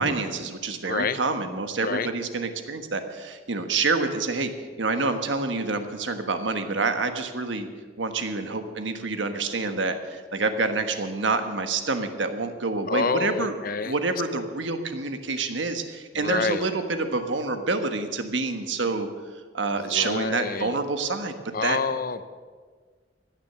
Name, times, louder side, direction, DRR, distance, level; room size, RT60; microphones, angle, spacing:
voice 1, 0.0-4.5 4.8-7.7 8.0-13.5 13.8-19.1 19.5-21.3 21.6-21.8, right 3 dB, 75° right, 7 dB, 1.3 m, -27 dB
voice 2, 0.9-1.2 1.8-2.1 12.9-13.9 14.3-14.4 16.2-16.6 19.8-20.8 21.5-22.2, left 4 dB, 50° left, 12 dB, 0.7 m, -28 dB
16.0 x 10.0 x 6.9 m, 1.5 s
head